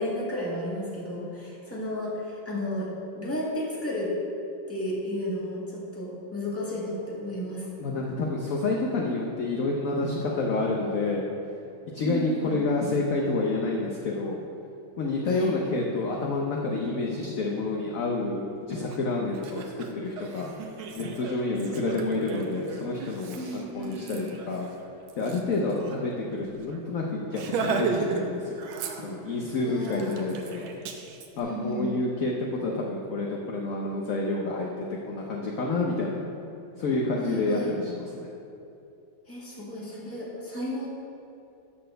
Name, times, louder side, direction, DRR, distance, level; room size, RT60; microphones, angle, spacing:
voice 1, 0.0-2.9 3.1-4.1 4.7-7.6 12.0-12.6 15.2-15.5 23.3-24.3 29.6-30.3 31.4-31.9 37.2-37.7 39.3-40.9, left 1 dB, 5° left, -5 dB, 1.6 m, -33 dB
voice 2, 7.8-11.2 11.9-14.4 15.0-20.5 21.0-24.7 25.1-28.6 29.0-30.7 31.4-36.2 36.8-38.3, left 2 dB, 60° left, -1 dB, 0.9 m, -29 dB
Laughter, 18.9-19.0 19.3-26.0 26.3-26.4 26.7-26.9 27.3-28.3 28.6-29.4 29.8-31.3, right 5 dB, 80° right, 1.6 m, -35 dB
11.0 x 4.2 x 6.6 m, 2.7 s
omnidirectional pair, 2.2 m